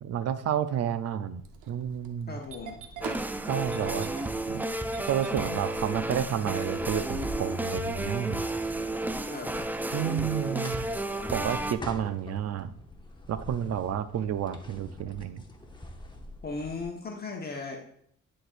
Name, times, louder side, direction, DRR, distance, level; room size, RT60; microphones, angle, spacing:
voice 1, 0.0-2.4 3.5-4.1 4.5-4.6 5.1-8.4 9.9-10.9 11.3-12.7 13.3-15.4, right 9 dB, 55° right, 12 dB, 0.5 m, -30 dB
Engine starting, 1.4-6.3, right 5 dB, 85° right, 0.8 m, -43 dB
voice 2, 2.3-2.8 9.3-9.6 16.4-17.8, left 3 dB, 30° left, 0 dB, 1.0 m, -37 dB
sound 1, 2.5-16.8, left 1 dB, 15° left, 0.9 m, -46 dB
sound 2, 3.0-11.7, right 1 dB, 5° right, 0.3 m, -32 dB
9.8 x 4.3 x 2.5 m, 0.67 s
cardioid pair, 90°, 30 cm